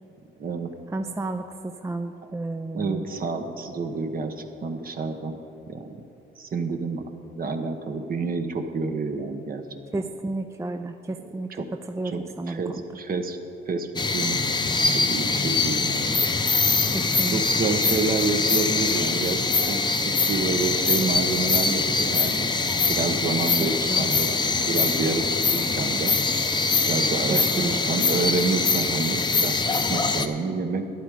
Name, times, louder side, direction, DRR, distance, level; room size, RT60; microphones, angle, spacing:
voice 1, 0.4-0.7 2.7-5.4 5.7-5.9 6.4-7.0 7.3-9.6 12.0-12.2 12.5-13.4 13.7-13.9 14.1-14.4 15.1-16.2 17.3-19.4 19.7-22.6 22.9-24.4 24.7-26.2 26.8-30.9, right 4 dB, 45° right, 6 dB, 1.1 m, -28 dB
voice 2, 0.9-3.1 9.9-12.8 16.9-17.4 23.6-24.1 27.3-28.2, right 2 dB, 15° right, 7 dB, 0.4 m, -32 dB
sound 1, 14.0-30.3, left 4 dB, 20° left, 0.7 m, -23 dB
11.5 x 11.0 x 4.9 m, 2.9 s
cardioid pair, 90°, 20 cm